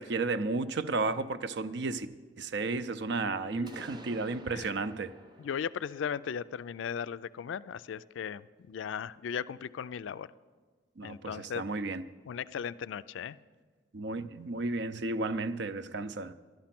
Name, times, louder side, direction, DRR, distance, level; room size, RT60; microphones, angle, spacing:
voice 1, 0.0-2.1 2.4-5.1 11.0-12.1 13.9-16.4, right 3 dB, 60° right, 13 dB, 0.5 m, -33 dB
voice 2, 3.3-3.8 4.5-4.7 5.4-10.3 11.0-11.6 12.3-13.4, left 7 dB, 75° left, 16 dB, 0.3 m, -37 dB
sound 1, 3.7-7.5, equal, 25° right, 0.8 m, -53 dB
12.0 x 12.0 x 5.9 m, 1.5 s
head